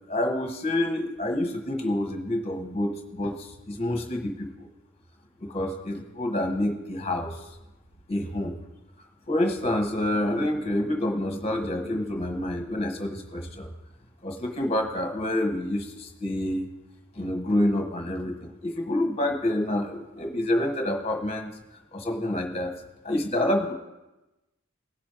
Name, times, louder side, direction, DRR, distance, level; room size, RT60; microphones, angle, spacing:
voice 1, 0.1-4.7 5.4-7.4 8.1-8.6 9.3-13.7 14.2-16.6 17.1-21.5 21.9-22.7 23.0-23.7, left 1 dB, 30° left, 3 dB, 1.3 m, -28 dB
18.0 x 6.2 x 3.1 m, 1.0 s
head